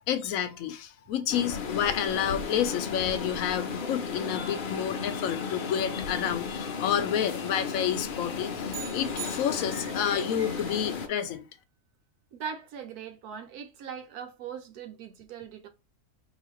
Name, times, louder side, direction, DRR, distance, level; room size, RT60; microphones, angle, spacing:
voice 1, 0.1-11.5, left 9 dB, 70° left, 0.9 m, -30 dB
sound 1, 1.3-11.1, left 5 dB, 55° left, 0.5 m, -34 dB
sound 2, 8.7-10.1, right 10 dB, 70° right, 0.6 m, -41 dB
voice 2, 9.7-10.7 11.1-11.2 12.3-15.7, right 7 dB, 90° right, 1.3 m, -41 dB
4.8 x 2.7 x 3.0 m
omnidirectional pair, 1.6 m